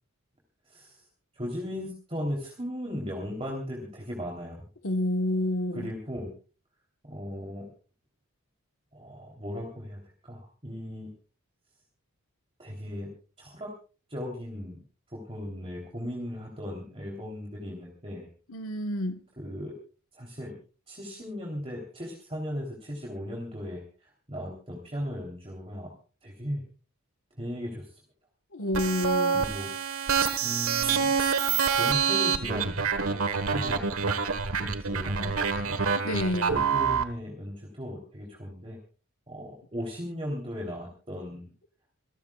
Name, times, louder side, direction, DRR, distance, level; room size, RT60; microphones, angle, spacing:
voice 1, 0.7-1.0 1.3-4.6 5.7-6.3 7.0-7.7 8.9-11.1 12.6-13.1 13.4-13.7 14.1-14.8 15.1-18.3 19.4-19.7 20.1-20.5 20.9-25.9 26.2-26.6 27.3-27.9 29.3-29.7 30.4-33.2 33.5-33.9 34.6-35.8 36.7-38.8 39.3-41.5, equal, 25° right, 3.4 m, -37 dB
voice 2, 4.8-5.9 18.5-19.2 28.5-29.4 36.0-36.7, left 1 dB, 65° left, 1.4 m, -29 dB
sound 1, 28.7-37.0, right 6 dB, 75° right, 1.4 m, -26 dB
27.5 x 14.0 x 2.4 m
head